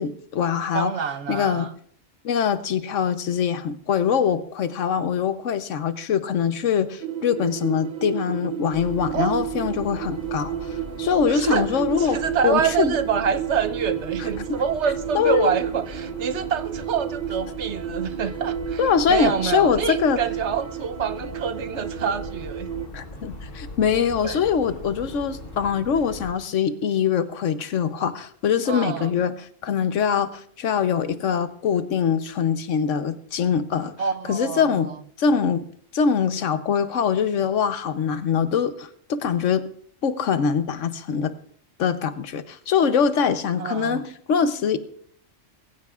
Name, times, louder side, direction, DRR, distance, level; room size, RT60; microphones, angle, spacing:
voice 1, 0.0-0.9 1.3-1.7 2.2-12.9 14.5-14.6 15.1-15.5 18.8-20.2 22.9-33.9 34.3-34.9 35.2-35.6 35.9-39.7 40.0-41.3 41.8-44.8, left 7 dB, 75° left, 1.2 m, -23 dB
voice 2, 0.7-1.7 9.1-9.3 11.3-11.7 12.0-18.8 19.1-22.7 24.2-24.4 28.7-29.1 34.0-34.9 43.6-44.0, right 7 dB, 70° right, 1.1 m, -26 dB
sound 1, 7.0-22.9, right 10 dB, 50° right, 0.7 m, -32 dB
sound 2, 8.3-8.9 9.8-9.9 10.2-10.4 10.7-13.8 14.6-15.2 15.5-16.3 16.7-18.5 19.3-19.5 19.8-20.0 20.2-20.9 21.1-23.3 24.2-26.2 27.2-27.3, right 1 dB, 5° right, 7.5 m, -53 dB
sound 3, 8.7-26.3, left 2 dB, 45° left, 1.8 m, -40 dB
22.0 x 15.0 x 2.4 m
omnidirectional pair, 1.3 m